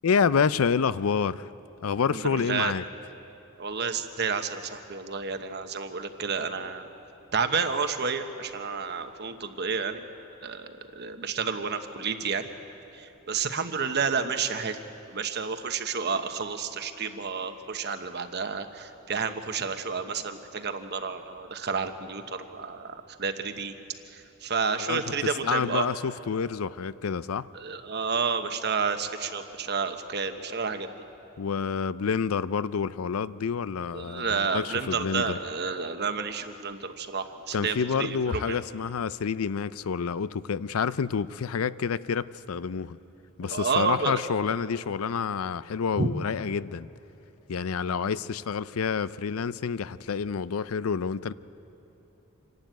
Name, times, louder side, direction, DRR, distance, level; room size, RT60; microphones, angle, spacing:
voice 1, 0.0-1.5 1.8-2.8 24.8-27.5 31.4-35.4 37.5-43.0 43.4-46.9 47.5-51.3, left 6 dB, 90° left, 0.5 m, -28 dB
voice 2, 2.1-2.7 3.6-6.9 7.3-10.0 10.4-12.5 12.9-14.8 15.1-23.7 24.1-25.9 27.5-30.9 33.9-38.6 43.4-44.2 46.0-46.1, right 5 dB, 50° right, 1.1 m, -30 dB
26.5 x 12.0 x 9.2 m
head